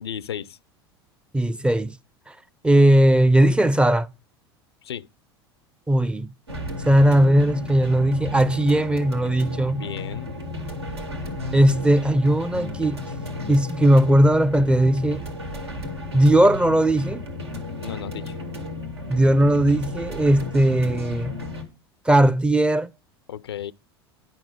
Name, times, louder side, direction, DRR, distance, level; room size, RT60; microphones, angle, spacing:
voice 1, 0.0-0.6 4.8-5.1 9.7-10.3 17.8-18.4 23.3-23.7, left 9 dB, 80° left, 0.4 m, -34 dB
voice 2, 1.3-1.9 2.3-2.4 2.6-4.1 5.9-6.3 6.9-9.8 11.5-13.0 13.5-15.2 16.1-17.2 19.1-21.3 22.1-22.9, right 1 dB, 10° right, 0.5 m, -18 dB
sound 1, 6.5-21.6, left 2 dB, 85° right, 2.1 m, -33 dB
10.5 x 6.0 x 6.4 m
figure-of-eight pair, 80°, 13 cm